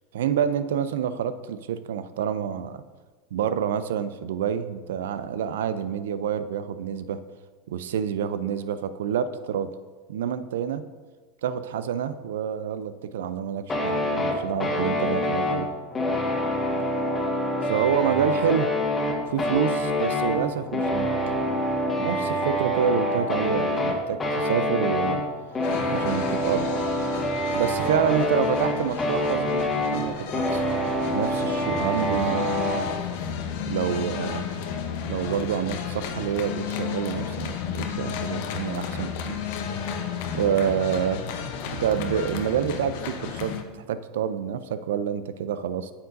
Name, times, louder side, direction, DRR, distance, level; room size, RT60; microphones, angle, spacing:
voice 1, 0.1-2.8 3.3-7.2 7.7-9.7 10.1-10.8 11.4-15.7 17.6-18.7 19.3-21.1 22.0-25.2 25.9-26.7 27.5-30.6 31.1-32.6 33.7-34.6 35.1-39.4 40.3-41.2 41.8-45.9, right 8 dB, 75° right, 13 dB, 0.4 m, -28 dB
sound 1, 13.7-32.9, left 1 dB, 25° left, 1.6 m, -26 dB
sound 2, 25.6-43.6, left 7 dB, 65° left, 0.8 m, -33 dB
8.9 x 7.0 x 2.6 m, 1.3 s
hypercardioid pair, 85°, 0 cm